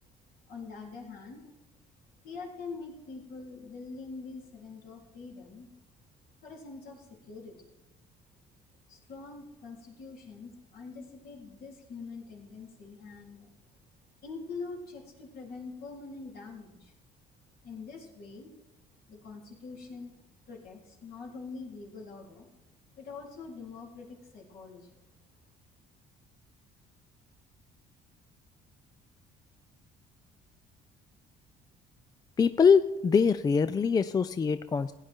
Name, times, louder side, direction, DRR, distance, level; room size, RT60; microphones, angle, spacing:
voice 1, 0.5-1.6 2.2-5.7 6.4-7.7 8.9-13.5 14.2-16.9 17.6-18.5 19.1-20.2 20.5-22.5 23.0-24.9, left 4 dB, 65° left, -2 dB, 3.6 m, -44 dB
voice 2, 32.4-34.9, left 6 dB, 25° left, 13 dB, 0.4 m, -23 dB
16.5 x 9.7 x 4.4 m, 0.96 s
cardioid pair, 110°, 17 cm